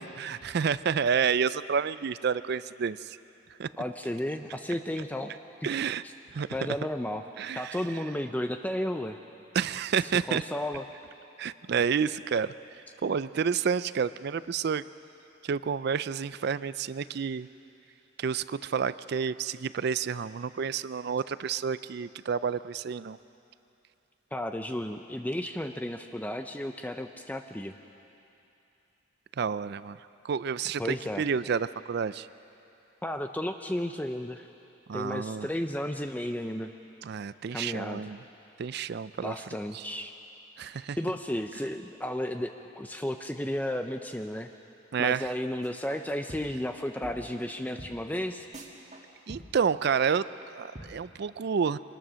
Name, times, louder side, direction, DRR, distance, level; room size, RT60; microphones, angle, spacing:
voice 1, 0.0-3.2 3.6-3.7 5.6-6.0 6.3-6.5 7.4-7.8 9.5-10.4 11.4-12.5 13.0-14.8 15.4-17.5 18.2-23.2 29.4-30.0 30.2-32.3 34.9-35.5 37.0-38.2 38.6-39.3 39.7-39.8 40.6-41.0 44.9-45.3 49.3-51.8, right 6 dB, 55° right, 16 dB, 0.4 m, -29 dB
voice 2, 3.8-5.3 5.6-5.7 6.5-7.2 7.6-9.2 10.3-10.8 24.3-27.7 30.8-31.3 33.0-34.5 34.9-36.7 37.5-38.1 39.2-40.1 41.0-44.5 45.0-48.5, left 1 dB, 10° left, 6 dB, 0.5 m, -33 dB
sound 1, 45.6-46.0 46.3-46.7 47.0-47.1 47.4-47.5 47.8-47.9 48.2-48.3 48.5-49.0 49.3-49.7 50.0-50.1 50.4-50.5 50.8-50.9, right 1 dB, 35° right, 1.9 m, -44 dB
24.0 x 20.0 x 6.3 m, 2.8 s
head